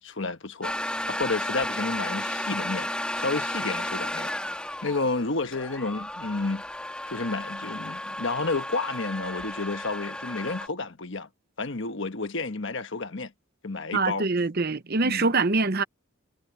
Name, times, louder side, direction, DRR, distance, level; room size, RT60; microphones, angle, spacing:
voice 1, 0.0-2.9 3.2-4.3 4.6-6.6 7.1-11.3 11.6-13.3 13.6-14.3 15.0-15.3, left 3 dB, 55° left, 1.3 m, -31 dB
sound 1, 0.6-10.7, left 1 dB, 5° left, 2.1 m, -33 dB
voice 2, 13.9-15.8, right 3 dB, 45° right, 0.9 m, -24 dB
head